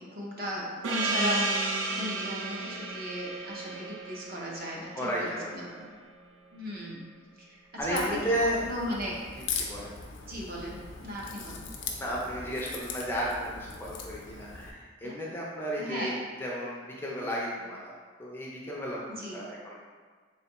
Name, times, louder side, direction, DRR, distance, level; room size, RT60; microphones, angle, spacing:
voice 1, 0.0-5.9 6.5-7.0 7.4-7.6 7.8-8.2 8.6-9.1 10.2-11.7 15.0-15.1 15.8-16.1 19.1-19.4, equal, 50° right, -4 dB, 0.7 m, -36 dB
Gong, 0.8-5.9, right 2 dB, 80° right, 0.5 m, -33 dB
voice 2, 4.9-5.9 7.8-8.7 9.6-9.9 12.0-16.1 16.4-17.9 18.2-19.8, equal, 10° left, -4 dB, 0.4 m, -33 dB
Crack, 7.8-14.7, left 5 dB, 70° left, 0.4 m, -40 dB
3.5 x 3.3 x 2.9 m, 1.5 s
head